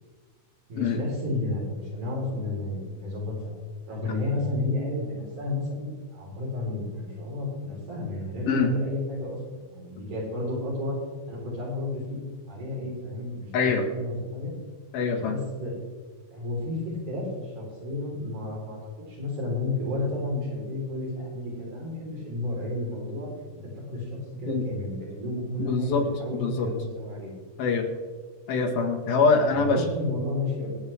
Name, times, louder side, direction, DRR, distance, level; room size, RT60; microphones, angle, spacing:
voice 1, 0.7-3.6 3.9-11.0 11.3-12.2 12.5-14.5 15.2-15.7 16.3-18.8 19.1-23.3 23.7-27.4 29.5-30.8, left 2 dB, 55° right, -4 dB, 5.5 m, -32 dB
voice 2, 13.5-13.9 14.9-15.4 24.5-24.6 25.6-26.0 26.3-26.7 27.6-27.9 28.5-29.8, left 4 dB, 75° left, 3 dB, 3.4 m, -24 dB
25.5 x 8.6 x 3.5 m, 1.5 s
omnidirectional pair, 4.3 m